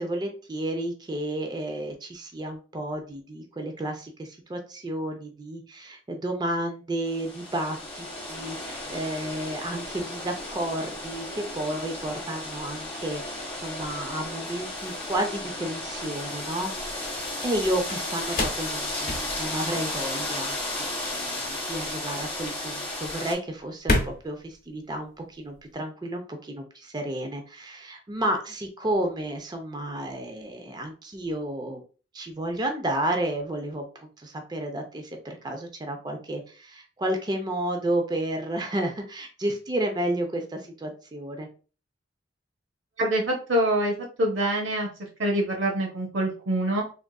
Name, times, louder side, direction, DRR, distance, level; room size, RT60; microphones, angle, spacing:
voice 1, 0.0-31.8 32.1-41.5, right 1 dB, 20° right, 4 dB, 0.4 m, -32 dB
sound 1, 7.1-23.3, left 1 dB, 10° left, 1.4 m, -34 dB
sound 2, 12.0-25.7, left 2 dB, 50° left, 0.9 m, -34 dB
voice 2, 43.0-44.9 45.2-46.8, right 1 dB, 85° right, 0 dB, 0.9 m, -25 dB
3.5 x 2.4 x 2.2 m, 0.36 s
head